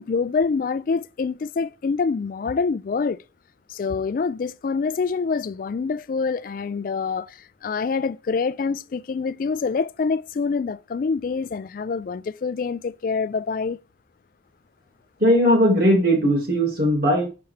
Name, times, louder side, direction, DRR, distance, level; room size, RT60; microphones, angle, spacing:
voice 1, 0.0-3.2 3.7-13.8, left 5 dB, 45° left, 0.3 m, -26 dB
voice 2, 15.2-17.3, equal, 50° right, 2.4 m, -18 dB
6.9 x 6.8 x 3.3 m
head